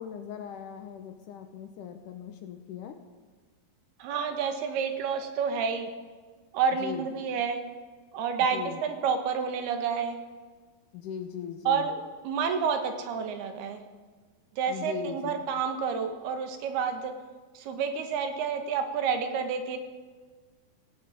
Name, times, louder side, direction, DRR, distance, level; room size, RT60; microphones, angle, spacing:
voice 1, 0.0-3.0 6.8-7.1 8.5-8.8 10.9-11.9 14.7-15.4, left 8 dB, 75° left, 7 dB, 2.0 m, -39 dB
voice 2, 4.0-5.9 6.5-7.6 8.1-10.2 11.7-13.8 14.6-17.1 17.5-19.8, right 6 dB, 85° right, 6 dB, 3.4 m, -29 dB
17.5 x 16.5 x 5.1 m, 1.4 s
omnidirectional pair, 4.5 m